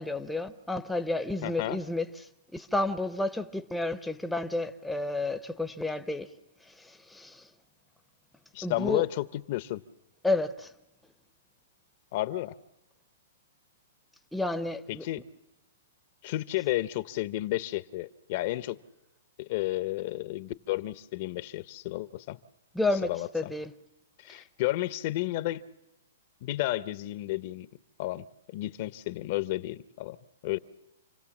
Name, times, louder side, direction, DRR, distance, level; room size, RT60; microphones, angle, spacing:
voice 1, 0.0-6.3 6.6-7.5 8.6-9.0 10.2-10.7 14.3-15.1 22.7-23.7 24.3-24.4, left 2 dB, 5° left, 0.7 m, -31 dB
voice 2, 1.4-1.8 8.5-9.8 12.1-12.6 14.9-15.2 16.2-18.8 19.4-22.4 23.1-23.5 24.2-25.6 26.4-27.7 28.0-30.2 30.4-30.6, left 16 dB, 45° left, 0.7 m, -32 dB
28.0 x 17.0 x 7.2 m
hypercardioid pair, 145°, 0 cm